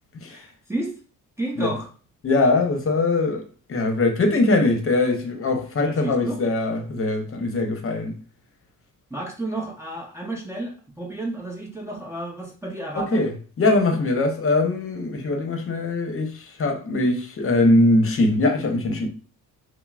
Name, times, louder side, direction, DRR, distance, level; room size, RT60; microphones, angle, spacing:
voice 1, 0.3-0.9 1.4-1.9 5.8-6.4 9.1-13.2, right 2 dB, 10° right, 0.7 m, -31 dB
voice 2, 2.2-3.4 3.7-8.1 13.0-13.3 13.6-16.3 16.6-19.1, left 2 dB, 40° left, 0.9 m, -21 dB
5.6 x 2.0 x 2.4 m
cardioid pair, 95°, 34 cm